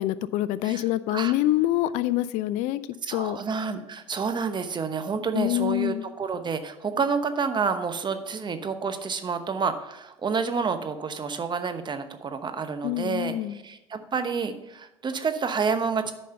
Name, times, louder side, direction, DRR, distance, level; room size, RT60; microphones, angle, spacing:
voice 1, 0.0-2.8 3.1-3.4 5.3-6.0 12.8-13.6, left 15 dB, 65° left, 15 dB, 0.4 m, -25 dB
voice 2, 3.0-16.1, right 5 dB, 35° right, 8 dB, 1.0 m, -29 dB
9.2 x 5.4 x 5.6 m, 0.93 s
hypercardioid pair, 65°, 14 cm